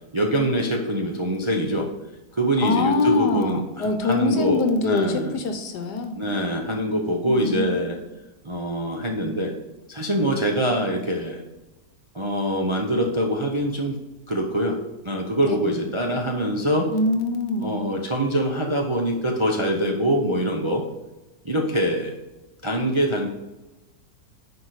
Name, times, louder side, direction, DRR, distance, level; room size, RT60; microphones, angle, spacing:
voice 1, 0.1-1.9 2.3-5.4 6.1-8.0 8.4-9.5 9.9-11.4 12.1-14.0 14.3-14.8 15.0-16.9 17.6-20.8 21.4-22.2 22.6-23.3, right 1 dB, 30° right, 1 dB, 0.5 m, -24 dB
voice 2, 2.6-6.1 7.2-7.8 15.4-15.6 16.9-17.7, left 3 dB, 75° left, 6 dB, 1.6 m, -24 dB
9.8 x 4.8 x 4.9 m, 1.0 s
omnidirectional pair, 1.8 m